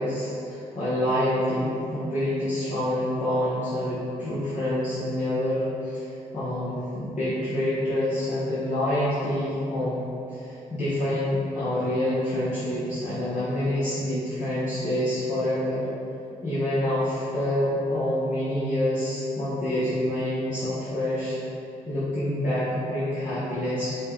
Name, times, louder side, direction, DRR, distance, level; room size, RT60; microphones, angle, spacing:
voice 1, 0.0-10.0 10.3-15.8 16.4-21.4 21.9-24.0, left 1 dB, 50° left, -12 dB, 1.3 m, -27 dB
5.4 x 2.4 x 3.7 m, 2.8 s
supercardioid pair, 50°, 17 cm